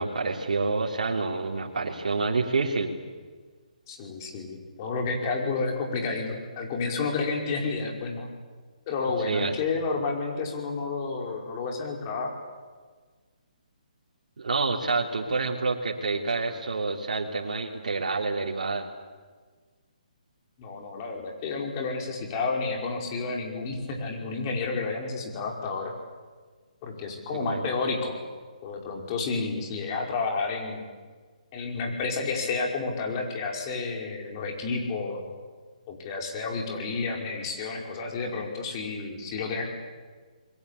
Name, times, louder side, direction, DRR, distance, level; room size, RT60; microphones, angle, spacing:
voice 1, 0.0-2.9 9.3-9.5 14.4-18.9 27.3-27.7, right 3 dB, 70° right, -1 dB, 3.4 m, -28 dB
voice 2, 3.9-8.3 8.9-12.3 20.6-25.9 26.8-28.2 28.6-30.8 31.5-35.2 35.9-39.7, left 4 dB, 30° left, 1 dB, 5.3 m, -30 dB
28.5 x 22.0 x 8.5 m, 1.5 s
hypercardioid pair, 150°, 4 cm